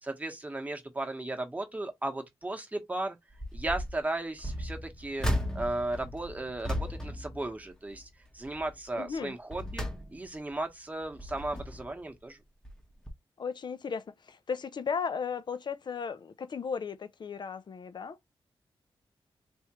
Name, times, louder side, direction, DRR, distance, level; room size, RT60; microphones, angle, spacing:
voice 1, 0.0-3.2 3.5-5.3 5.5-8.1 8.3-12.4, right 2 dB, 15° right, 1.0 m, -35 dB
sound 1, 3.3-4.0 4.4-8.1 8.4-8.7 9.2-10.5 11.0-12.0 12.6-12.8 13.1-13.2, equal, 5° left, 0.9 m, -36 dB
voice 2, 9.0-9.3 13.4-18.2, left 6 dB, 50° left, 0.5 m, -35 dB
3.5 x 2.8 x 2.9 m
wide cardioid pair, 90°, 10 cm